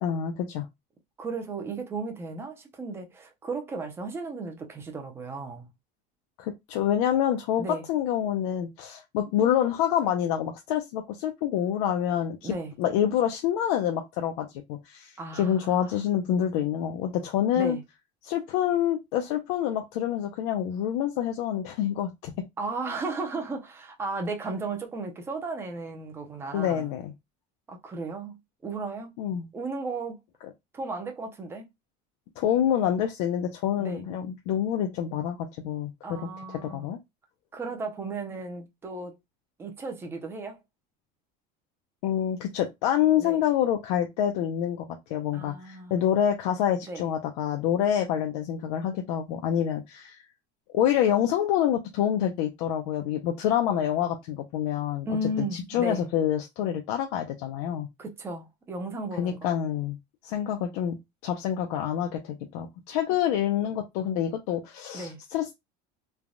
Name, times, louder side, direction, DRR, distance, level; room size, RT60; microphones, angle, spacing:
voice 1, 0.0-0.7 6.4-17.8 18.2-22.3 26.5-27.1 29.2-29.4 32.4-36.2 36.5-37.0 42.0-50.2 50.7-55.1 55.4-57.9 59.2-60.0 60.2-61.0 61.2-65.5, left 10 dB, 75° left, 0.5 m, -27 dB
voice 2, 1.2-5.7 7.6-7.8 12.4-12.7 15.2-16.0 17.6-17.8 22.6-26.9 27.7-28.3 28.6-29.1 29.5-30.2 30.7-31.7 33.8-34.0 36.0-36.9 37.5-39.2 39.6-40.6 43.2-43.4 45.3-46.0 46.9-47.0 55.1-56.0 58.0-59.5 64.9-65.2, right 3 dB, 10° right, 0.4 m, -35 dB
3.2 x 2.1 x 2.5 m
cardioid pair, 175°, 21 cm